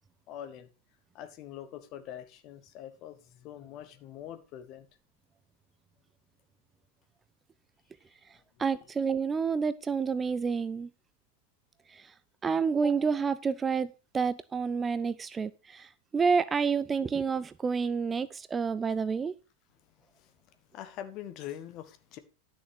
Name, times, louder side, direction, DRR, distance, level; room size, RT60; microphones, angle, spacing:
voice 1, 0.3-0.7 1.1-4.9 8.8-8.9 20.1-20.3 20.7-22.2, left 11 dB, 40° left, 1.2 m, -44 dB
voice 2, 8.6-10.9 11.9-12.0 12.4-15.9 16.1-19.3, right 5 dB, 15° right, 0.4 m, -29 dB
11.0 x 6.3 x 4.5 m
figure-of-eight pair, 90°, 0 cm